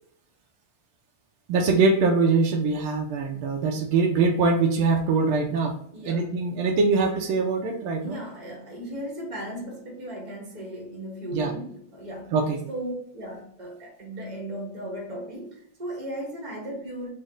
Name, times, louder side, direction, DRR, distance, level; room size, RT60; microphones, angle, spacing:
voice 1, 1.5-5.7 6.0-8.2 11.3-11.5 12.3-12.6, right 4 dB, 85° right, 1.5 m, -23 dB
voice 2, 5.9-6.4 8.0-12.4 12.7-17.1, right 1 dB, 35° right, 0.7 m, -36 dB
4.1 x 2.1 x 3.7 m
omnidirectional pair, 2.3 m